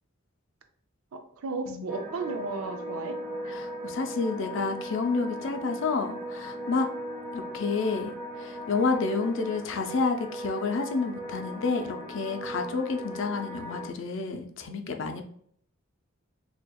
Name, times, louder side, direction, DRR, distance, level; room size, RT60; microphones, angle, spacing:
voice 1, 1.1-3.2, right 3 dB, 85° right, 7 dB, 0.5 m, -34 dB
sound 1, 1.9-13.9, equal, 5° right, 0.8 m, -38 dB
voice 2, 3.5-6.9 7.3-8.1 8.4-15.2, left 4 dB, 60° left, 6 dB, 0.5 m, -29 dB
4.2 x 2.8 x 2.2 m, 0.64 s
head